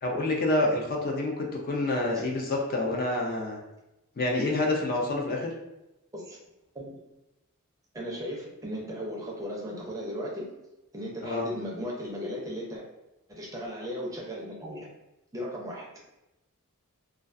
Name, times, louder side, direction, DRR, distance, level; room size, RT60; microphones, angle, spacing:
voice 1, 0.0-3.6 4.2-5.5 11.2-11.5, left 2 dB, 40° left, 0 dB, 0.4 m, -27 dB
voice 2, 7.9-10.5 10.9-12.8 13.3-14.9 15.3-15.9, equal, 15° right, -3 dB, 0.5 m, -36 dB
2.3 x 2.2 x 2.4 m, 0.94 s
head